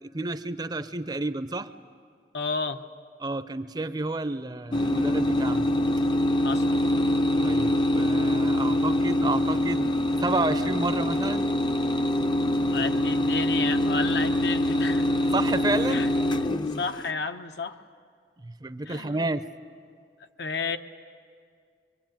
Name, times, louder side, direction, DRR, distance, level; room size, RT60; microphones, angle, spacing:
voice 1, 0.0-1.7 3.2-5.7 7.4-9.9 10.2-11.5 15.3-16.1 18.4-19.4, right 2 dB, 25° right, 11 dB, 0.6 m, -30 dB
voice 2, 2.3-2.8 6.4-6.8 12.7-15.1 15.9-16.1 16.6-17.8 18.9-19.2 20.4-20.8, left 4 dB, 75° left, 7 dB, 0.9 m, -31 dB
sound 1, 4.7-17.1, left 1 dB, 25° left, 0.6 m, -24 dB
24.0 x 24.0 x 9.1 m, 2.2 s
head